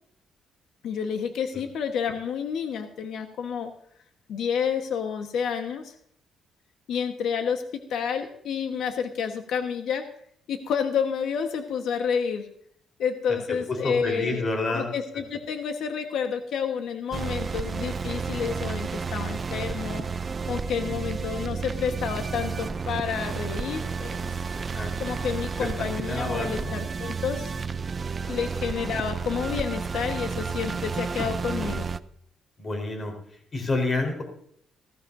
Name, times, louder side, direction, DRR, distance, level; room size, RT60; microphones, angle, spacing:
voice 1, 0.8-3.7 4.3-5.9 6.9-7.6 7.9-10.0 10.5-12.5 13.0-20.0 20.5-24.3 25.0-27.5 28.3-31.9, left 7 dB, 75° left, 6 dB, 1.3 m, -29 dB
voice 2, 13.7-14.9 24.5-24.9 25.6-25.7 26.0-26.7 28.2-28.4 32.6-33.1 33.5-34.2, left 2 dB, 35° left, 4 dB, 4.1 m, -29 dB
sound 1, 17.1-32.0, right 5 dB, 35° right, 0.5 m, -31 dB
16.0 x 15.0 x 2.7 m, 0.66 s
cardioid pair, 120°, 0 cm